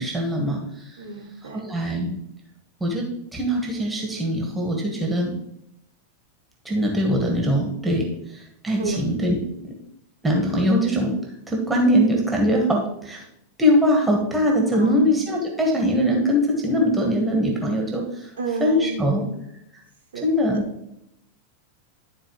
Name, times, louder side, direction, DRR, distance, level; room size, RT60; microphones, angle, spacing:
voice 1, 0.0-1.0 1.5-2.1 2.8-5.3 6.6-9.7 10.2-11.2 11.5-13.2 13.6-18.3 18.6-19.2 19.7-19.8 20.2-20.7, equal, 10° right, 0 dB, 1.4 m, -22 dB
voice 2, 1.0-1.6 8.8-9.0 14.7-15.0 18.4-19.4 20.1-20.6, right 3 dB, 65° right, -1 dB, 1.1 m, -31 dB
12.0 x 4.2 x 3.1 m, 0.80 s
figure-of-eight pair, 90°, 0 cm